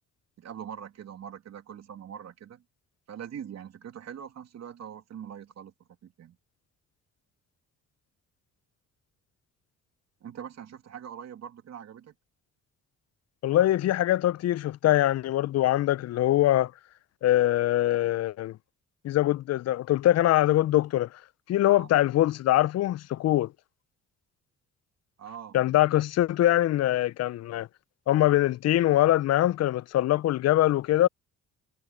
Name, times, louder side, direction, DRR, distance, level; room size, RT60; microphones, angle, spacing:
voice 1, 0.4-2.6 3.1-5.7 6.0-6.4 10.2-12.1 21.7-21.9 25.2-25.6, right 8 dB, 60° right, 2.2 m, -42 dB
voice 2, 13.4-16.7 17.2-18.6 19.0-21.1 21.5-23.5 25.5-27.7 28.1-31.1, left 14 dB, 55° left, 0.5 m, -23 dB
cardioid pair, 90°, 30 cm